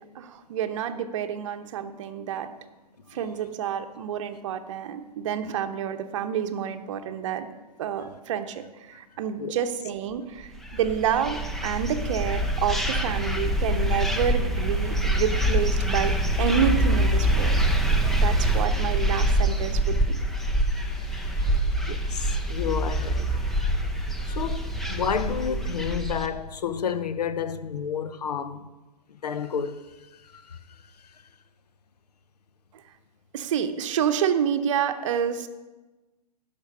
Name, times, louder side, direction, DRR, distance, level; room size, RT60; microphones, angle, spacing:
voice 1, 0.1-2.5 3.1-7.5 7.8-17.6 18.2-20.2 33.3-35.5, right 8 dB, 50° right, 0.8 m, -28 dB
sound 1, 10.6-26.3, right 1 dB, ahead, 0.4 m, -25 dB
voice 2, 20.6-28.7 29.1-31.2, left 7 dB, 70° left, 0.7 m, -32 dB
12.0 x 5.2 x 5.0 m
figure-of-eight pair, 125°, 21 cm